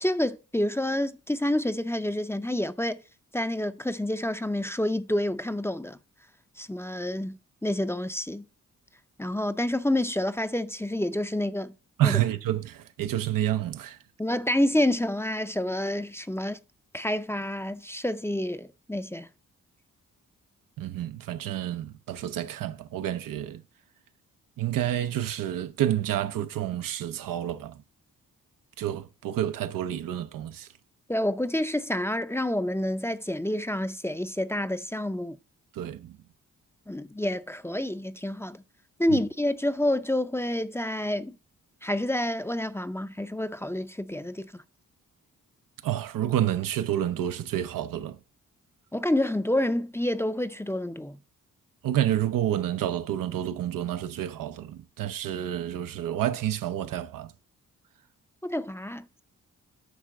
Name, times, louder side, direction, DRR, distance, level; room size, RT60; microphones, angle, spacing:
voice 1, 0.0-3.0 3.3-6.0 6.6-8.4 9.2-11.7 12.0-12.2 14.2-16.6 16.9-19.3 31.1-35.4 36.9-38.6 39.0-41.4 41.8-44.6 48.9-51.2 58.4-59.2, left 1 dB, 10° left, 0.5 m, -28 dB
voice 2, 12.0-14.0 20.8-23.6 24.6-27.8 28.8-30.7 35.7-36.2 39.1-39.2 45.8-48.2 51.8-57.3, right 11 dB, 90° right, 0.7 m, -29 dB
9.5 x 3.4 x 6.4 m
cardioid pair, 70°, 32 cm